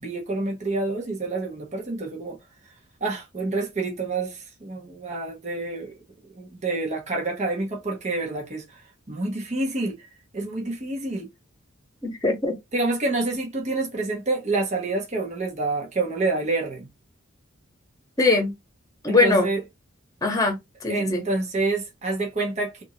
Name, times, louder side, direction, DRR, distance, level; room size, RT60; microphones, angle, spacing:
voice 1, 0.0-2.4 3.0-5.9 6.3-8.6 9.1-9.9 10.3-11.3 12.7-16.9 19.1-19.6 20.9-22.8, right 2 dB, 35° right, 1.0 m, -27 dB
voice 2, 12.0-12.6 18.2-18.5 19.0-19.5 20.2-20.6 20.8-21.2, left 3 dB, 15° left, 1.2 m, -21 dB
3.5 x 2.6 x 3.0 m
head